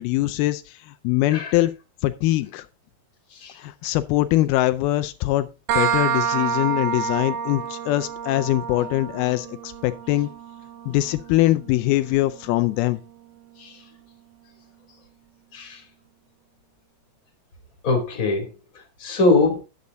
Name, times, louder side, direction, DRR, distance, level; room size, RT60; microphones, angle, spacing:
voice 1, 0.0-1.7 2.0-2.7 3.6-5.5 5.7-10.3 10.9-13.0, left 16 dB, 85° left, 2.5 m, -22 dB
sound 1, 5.7-13.1, right 7 dB, 70° right, 2.2 m, -29 dB
voice 2, 17.8-18.5 19.0-19.6, left 3 dB, 25° left, 2.6 m, -21 dB
9.7 x 8.3 x 3.7 m
omnidirectional pair, 4.4 m